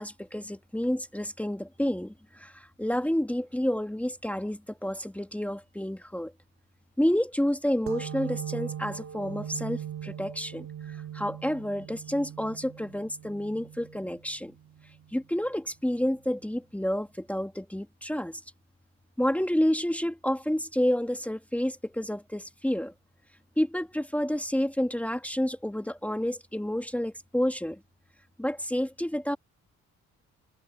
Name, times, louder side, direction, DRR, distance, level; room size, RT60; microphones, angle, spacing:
voice 1, 0.0-6.3 7.0-14.5 15.1-18.4 19.2-22.9 23.6-27.8 28.4-29.4, equal, 5° left, 2.0 m, -29 dB
sound 1, 7.9-15.2, right 9 dB, 45° right, 1.9 m, -40 dB
cardioid pair, 90°, 30 cm